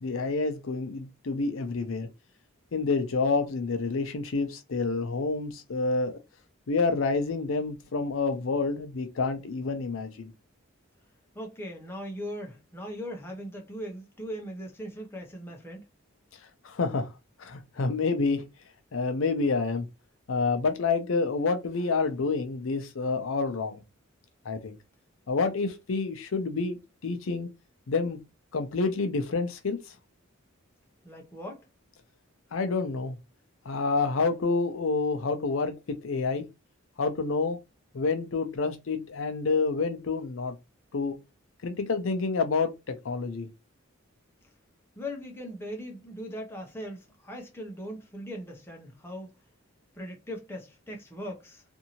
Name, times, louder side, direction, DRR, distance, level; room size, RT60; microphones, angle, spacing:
voice 1, 0.0-2.1 2.7-6.2 6.7-10.3 16.6-17.1 17.4-18.4 18.9-19.9 20.3-23.8 24.4-24.7 25.3-26.8 27.0-27.5 27.9-28.2 28.5-29.8 32.5-33.2 33.7-36.4 37.0-37.6 37.9-40.6 40.9-41.2 41.6-43.5, left 4 dB, 70° left, 0.5 m, -28 dB
voice 2, 11.3-15.8 31.0-31.7 45.0-49.3 49.9-51.6, equal, 10° left, 0.6 m, -39 dB
2.6 x 2.6 x 2.8 m
head